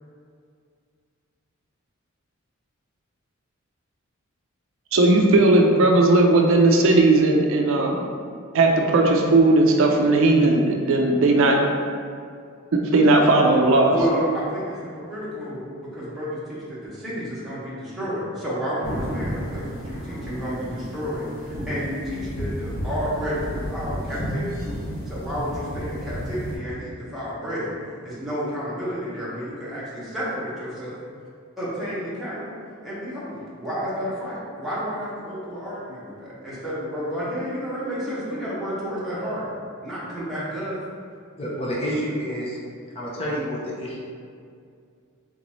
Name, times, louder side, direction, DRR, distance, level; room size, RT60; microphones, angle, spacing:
voice 1, 4.9-8.1 8.5-11.8 12.7-14.0, right 2 dB, 60° right, 1 dB, 0.4 m, -17 dB
voice 2, 13.9-24.7 25.0-27.7 28.0-31.0 31.6-32.5 32.8-39.5 39.8-40.8, equal, ahead, -11 dB, 1.2 m, -31 dB
sound 1, 18.8-26.6, equal, 50° left, 1.2 m, -32 dB
voice 3, 41.4-42.6 42.9-44.0, equal, 25° left, -5 dB, 0.6 m, -28 dB
3.9 x 3.6 x 3.1 m, 2.3 s
head